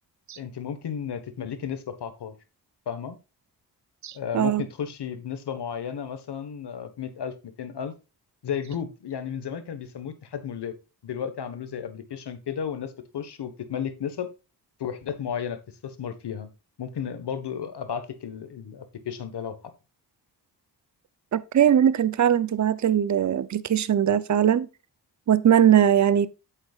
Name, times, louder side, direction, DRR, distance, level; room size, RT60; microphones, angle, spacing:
voice 1, 0.4-2.4 2.9-3.2 4.1-7.9 8.4-10.8 11.0-14.3 14.8-16.5 16.8-19.6, left 8 dB, 75° left, 1.4 m, -33 dB
voice 2, 4.0-4.6 21.3-24.7 25.3-26.3, right 9 dB, 45° right, 0.7 m, -20 dB
8.7 x 7.5 x 2.4 m
cardioid pair, 85°, 41 cm